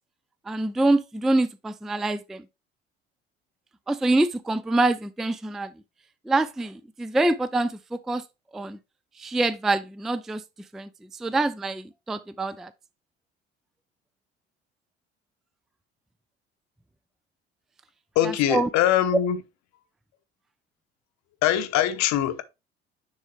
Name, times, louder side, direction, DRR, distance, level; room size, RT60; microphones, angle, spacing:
voice 1, 0.5-2.4 3.9-5.7 6.3-7.7 8.1-8.2 8.5-8.8 9.2-10.4 10.7-10.9 11.2-12.7 18.5-18.7, right 2 dB, ahead, 0.4 m, -25 dB
voice 2, 18.1-19.4 21.4-22.4, left 11 dB, 55° left, 0.9 m, -22 dB
9.7 x 3.6 x 3.2 m
figure-of-eight pair, 60°, 32 cm